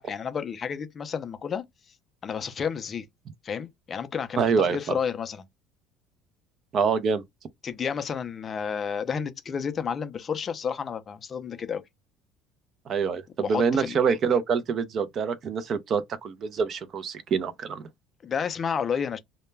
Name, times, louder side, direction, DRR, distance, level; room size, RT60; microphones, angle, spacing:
voice 1, 0.0-1.6 2.2-3.1 3.4-5.4 7.6-11.8 13.4-14.0 18.2-19.2, left 7 dB, 30° left, 0.4 m, -31 dB
voice 2, 4.4-5.0 6.7-7.2 12.9-17.8, right 6 dB, 40° right, 0.5 m, -26 dB
2.1 x 2.1 x 3.2 m
cardioid pair, 130°, 0 cm